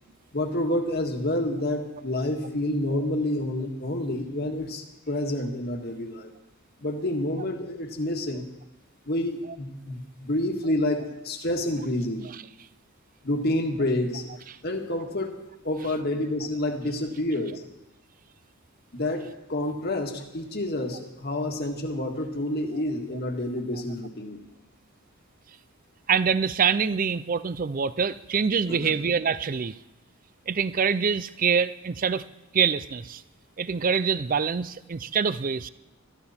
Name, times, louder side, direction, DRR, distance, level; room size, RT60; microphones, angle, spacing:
voice 1, 0.3-6.3 6.8-8.5 9.1-12.3 13.2-14.4 14.6-15.3 15.6-17.6 18.9-24.4 28.7-28.9, left 1 dB, 45° left, 3 dB, 1.9 m, -28 dB
voice 2, 26.1-29.7 30.5-32.2 32.5-33.2 33.6-35.7, right 6 dB, 40° right, 16 dB, 0.4 m, -25 dB
21.5 x 14.0 x 4.3 m, 0.98 s
head